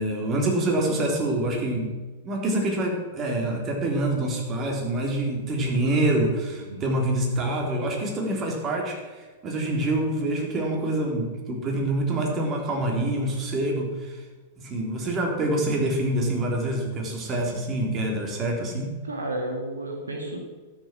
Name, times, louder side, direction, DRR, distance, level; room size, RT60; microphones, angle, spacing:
voice 1, 0.0-1.9 2.2-14.2 14.6-18.9, right 1 dB, 30° right, 1 dB, 3.5 m, -26 dB
voice 2, 19.0-20.4, right 1 dB, 80° right, 2 dB, 2.1 m, -32 dB
12.5 x 7.5 x 7.5 m, 1.3 s
figure-of-eight pair, 100°, 0 cm